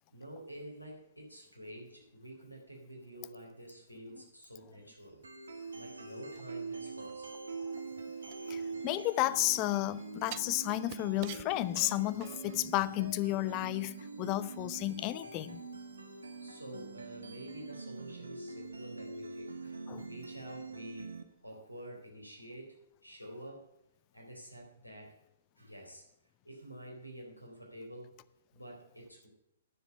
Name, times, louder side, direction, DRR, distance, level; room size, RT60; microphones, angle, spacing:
voice 1, 0.1-5.2 5.5-7.3 8.3-8.4 16.4-21.1 21.4-22.8 23.0-23.7 24.1-25.2 25.6-26.1 26.4-28.1 28.5-29.3, equal, 90° left, 4.0 m, -49 dB
sound 1, 5.2-21.2, right 4 dB, 70° right, 1.5 m, -44 dB
voice 2, 7.7-8.1 8.5-15.6 19.9-20.1, left 18 dB, 30° left, 0.5 m, -33 dB
sound 2, 8.3-9.5 10.3-12.7 13.0-13.1, right 17 dB, 35° right, 0.4 m, -47 dB
10.0 x 7.2 x 6.6 m
figure-of-eight pair, 115°, 0 cm